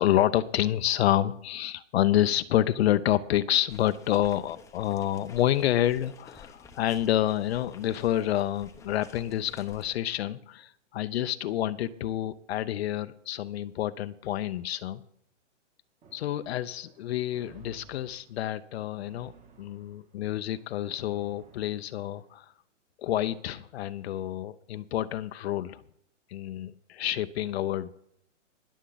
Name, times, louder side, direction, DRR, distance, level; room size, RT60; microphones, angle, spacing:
voice 1, 0.0-15.0 16.1-19.3 19.6-22.5 23.0-25.8 26.3-27.9, left 12 dB, 55° left, 11 dB, 0.6 m, -28 dB
sound 1, 3.7-9.9, left 5 dB, 10° left, 0.7 m, -51 dB
sound 2, 16.0-22.5, right 5 dB, 20° right, 1.5 m, -57 dB
20.5 x 7.2 x 4.0 m, 0.71 s
hypercardioid pair, 140°, 38 cm